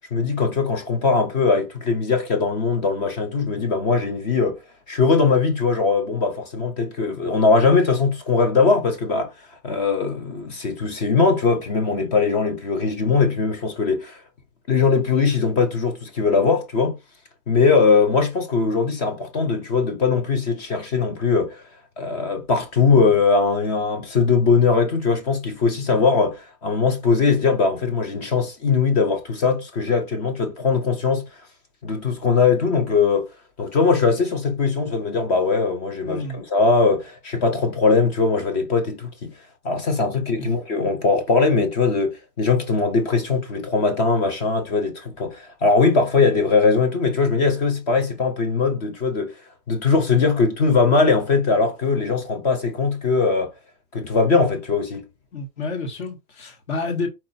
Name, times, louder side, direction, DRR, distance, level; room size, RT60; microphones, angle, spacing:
voice 1, 0.1-4.6 4.9-9.3 9.6-14.2 14.7-17.0 17.5-21.6 22.0-31.2 31.8-33.3 33.6-39.3 39.6-49.3 49.7-53.5 53.9-55.0, left 4 dB, 25° left, 0.8 m, -20 dB
voice 2, 36.0-36.4 40.4-40.6 55.3-57.1, left 3 dB, 45° left, 1.8 m, -29 dB
4.3 x 2.9 x 4.1 m
hypercardioid pair, 160°, 47 cm